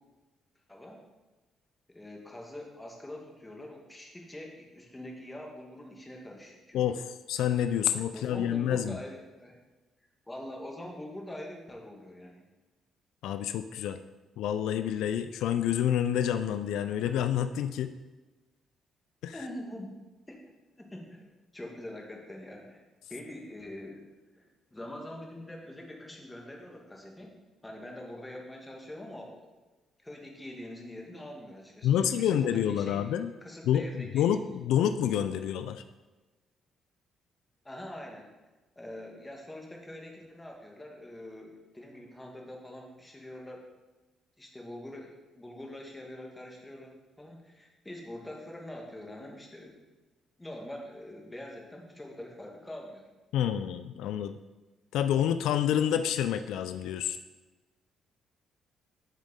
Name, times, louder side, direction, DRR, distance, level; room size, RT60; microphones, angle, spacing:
voice 1, 0.7-1.0 1.9-6.9 8.1-9.6 10.3-12.4 19.3-20.0 20.3-22.8 23.1-24.0 24.4-24.5 24.7-27.3 27.6-29.5 30.0-33.0 33.4-34.3 37.6-38.3 38.8-43.6 44.4-49.8 50.4-53.1, left 1 dB, 15° left, 0 dB, 1.7 m, -44 dB
voice 2, 6.7-9.0 13.2-14.0 14.4-17.9 19.2-19.3 31.8-33.3 33.7-35.8 53.3-54.3 54.9-57.2, left 10 dB, 85° left, 10 dB, 0.3 m, -28 dB
8.2 x 6.3 x 3.7 m, 1.2 s
cardioid pair, 90°, 0 cm